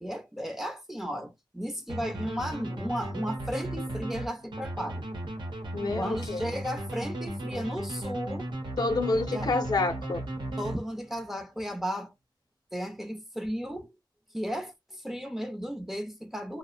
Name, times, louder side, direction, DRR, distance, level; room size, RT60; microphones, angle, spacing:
voice 1, 0.0-5.1 5.9-8.5 9.3-9.5 10.6-12.1 12.7-13.9 14.3-16.6, equal, 5° right, 0.6 m, -34 dB
sound 1, 1.9-11.2, right 1 dB, 75° right, 0.8 m, -36 dB
voice 2, 5.7-6.5 8.8-10.2, left 3 dB, 60° left, 0.6 m, -28 dB
2.6 x 2.0 x 2.4 m
wide cardioid pair, 85°, 8 cm